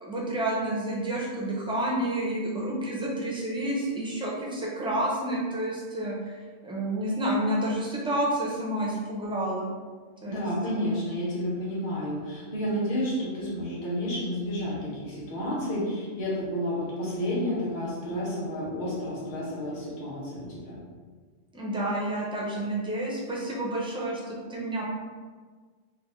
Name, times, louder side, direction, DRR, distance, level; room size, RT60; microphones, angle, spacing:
voice 1, 0.0-6.4 6.6-9.7 10.2-10.9 21.5-24.8, right 1 dB, 10° right, -5 dB, 0.3 m, -30 dB
voice 2, 10.3-20.8, equal, 40° left, -6 dB, 1.1 m, -31 dB
3.2 x 2.3 x 3.6 m, 1.5 s
omnidirectional pair, 1.3 m